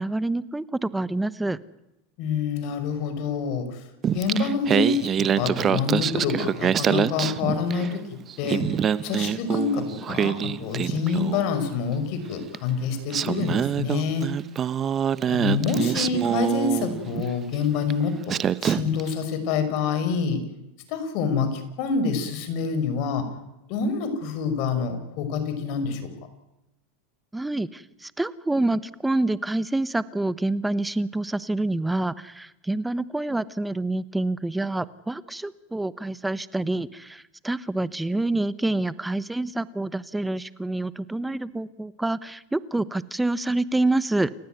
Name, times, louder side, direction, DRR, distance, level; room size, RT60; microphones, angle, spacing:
voice 1, 0.0-1.6 27.3-44.3, right 2 dB, 5° right, 17 dB, 1.1 m, -27 dB
voice 2, 2.2-3.8 4.1-8.0 8.4-8.7 9.0-14.3 15.3-18.4 18.6-20.4 20.9-23.3 23.7-26.1, left 5 dB, 55° left, 9 dB, 5.7 m, -26 dB
Singing, 4.0-8.0 8.3-11.5 12.5-12.6 13.1-17.3 17.9-18.0 18.3-19.1, right 8 dB, 30° right, 1.0 m, -25 dB
29.0 x 15.5 x 9.4 m, 0.93 s
supercardioid pair, 125°, 0 cm